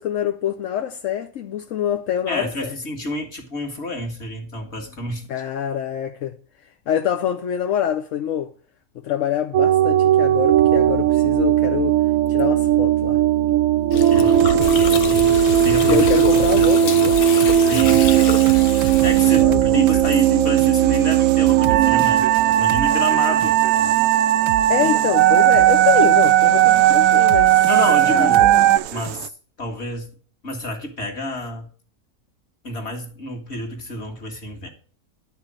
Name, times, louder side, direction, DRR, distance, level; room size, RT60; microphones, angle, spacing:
voice 1, 0.0-2.7 5.3-6.4 6.6-8.5 9.0-12.0 12.3-13.2 15.9-17.2 19.4-19.8 24.7-27.7 28.0-28.6, left 10 dB, 65° left, 1.0 m, -25 dB
voice 2, 2.3-5.3 14.1-16.1 16.3-16.4 17.6-18.0 19.0-22.3 22.6-23.6 27.7-28.5 28.9-29.3 29.6-30.1 30.4-31.7 32.6-34.7, left 1 dB, 45° left, 2.2 m, -29 dB
sound 1, 9.5-28.8, right 11 dB, 70° right, 1.0 m, -16 dB
Gurgling, 13.9-19.4, left 7 dB, 80° left, 1.4 m, -29 dB
sound 2, 14.4-29.3, right 11 dB, 90° right, 1.1 m, -31 dB
11.5 x 4.3 x 7.5 m
omnidirectional pair, 1.6 m